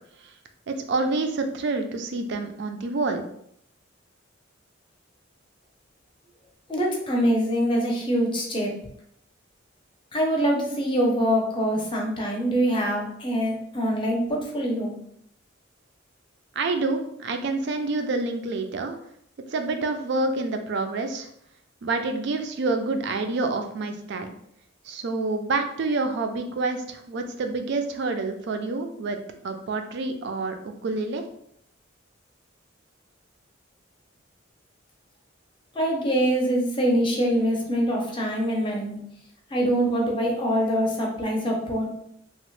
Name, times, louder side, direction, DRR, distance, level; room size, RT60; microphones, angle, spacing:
voice 1, 0.7-3.2 16.6-19.0 19.5-21.3 21.8-24.3 24.8-31.2, right 3 dB, 60° right, 6 dB, 0.4 m, -28 dB
voice 2, 6.7-8.7 10.1-14.9 35.7-39.0 39.5-41.9, equal, 25° left, 0 dB, 0.6 m, -24 dB
2.9 x 2.1 x 3.0 m, 0.70 s
head